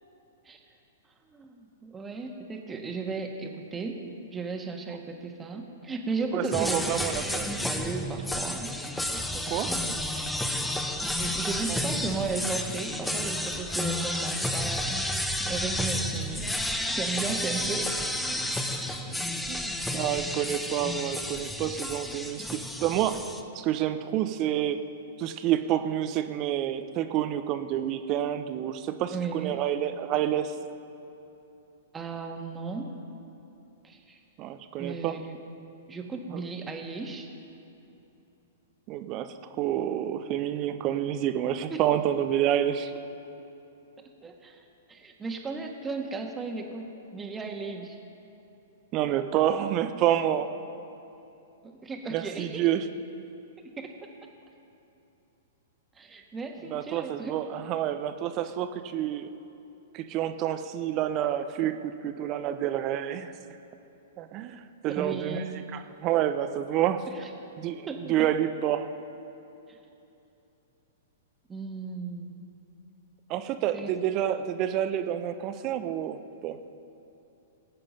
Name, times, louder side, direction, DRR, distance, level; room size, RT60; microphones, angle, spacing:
voice 1, 1.3-4.0 4.3-6.9 7.6-8.7 9.1-10.0 11.2-15.0 15.4-17.9 19.6-19.7 29.1-29.6 31.9-32.9 33.8-34.2 34.8-35.4 35.9-37.3 41.7-41.8 44.2-44.6 44.9-48.0 51.6-52.6 53.6-53.9 56.0-57.3 65.0-65.6 67.1-67.3 67.9-68.3 71.5-72.4 73.7-73.9, right 4 dB, 15° right, 3 dB, 1.6 m, -35 dB
voice 2, 6.3-7.5 9.5-9.7 11.7-11.8 19.5-23.2 23.5-24.8 25.2-30.5 34.4-35.2 36.3-36.4 38.9-42.9 48.9-50.5 52.1-52.9 56.7-59.3 59.9-63.3 64.2-67.1 67.6-68.9 73.3-76.6, right 11 dB, 35° right, 10 dB, 0.8 m, -28 dB
sound 1, 6.5-23.4, left 1 dB, 5° left, 0.9 m, -31 dB
20.0 x 8.7 x 5.5 m, 2.9 s
figure-of-eight pair, 105°, 0 cm